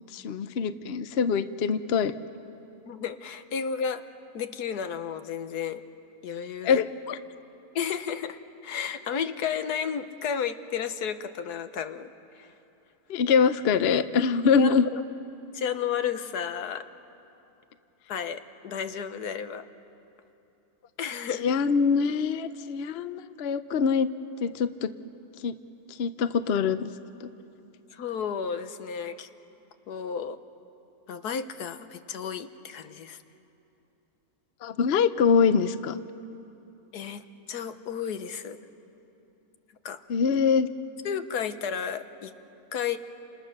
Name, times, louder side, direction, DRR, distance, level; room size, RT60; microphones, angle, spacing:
voice 1, 0.0-2.1 6.6-7.2 13.1-14.9 21.4-24.1 24.4-24.9 25.4-25.6 25.9-26.9 27.2-27.3 34.6-36.0 40.1-40.7, left 6 dB, 55° left, 12 dB, 0.7 m, -24 dB
voice 2, 2.9-4.1 4.3-5.8 6.2-6.8 7.7-12.5 14.6-15.0 15.5-16.9 18.1-19.7 21.0-21.5 27.9-29.3 29.9-30.4 31.1-33.2 36.9-38.6 39.8-40.0 41.0-42.3 42.7-43.0, left 7 dB, 75° left, 10 dB, 1.5 m, -32 dB
30.0 x 27.5 x 6.6 m, 2.9 s
omnidirectional pair, 1.7 m